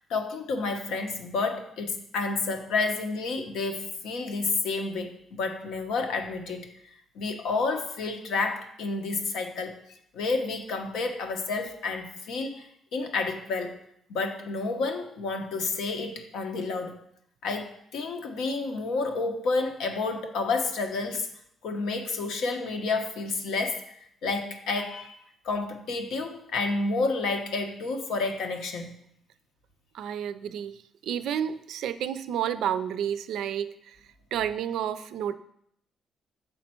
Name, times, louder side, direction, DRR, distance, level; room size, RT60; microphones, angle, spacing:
voice 1, 0.0-6.7 7.1-9.8 10.1-13.8 14.1-17.0 17.4-21.3 21.6-25.2 25.4-28.9, left 3 dB, 85° left, 4 dB, 0.8 m, -30 dB
voice 2, 29.9-34.0 34.3-35.3, right 9 dB, 80° right, 12 dB, 0.3 m, -31 dB
6.5 x 4.3 x 4.3 m, 0.72 s
cardioid pair, 90°, 0 cm